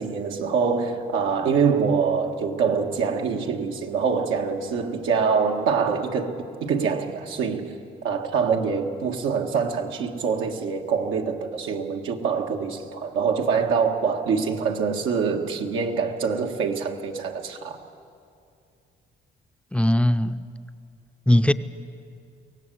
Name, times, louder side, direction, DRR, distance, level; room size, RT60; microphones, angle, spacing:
voice 1, 0.0-7.7 8.0-17.8, right 5 dB, 90° right, 1.7 m, -25 dB
voice 2, 19.7-20.4 21.3-21.5, left 1 dB, 5° left, 0.5 m, -19 dB
24.0 x 17.5 x 7.8 m
cardioid pair, 90°, 20 cm